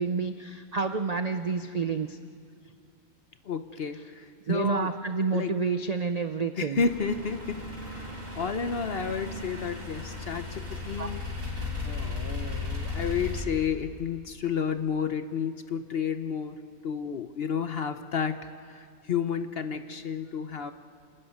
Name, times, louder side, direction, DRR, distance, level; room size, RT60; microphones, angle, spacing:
voice 1, 0.0-2.2 4.5-6.8 11.0-11.1, right 5 dB, 55° right, 8 dB, 0.4 m, -29 dB
voice 2, 3.4-4.9 5.3-5.5 6.6-8.1 8.3-11.2 11.6-16.6 16.8-20.7, left 6 dB, 50° left, 9 dB, 0.8 m, -31 dB
sound 1, 6.8-13.4, left 3 dB, 85° right, 5.2 m, -36 dB
27.0 x 12.5 x 9.6 m, 2.2 s
omnidirectional pair, 1.6 m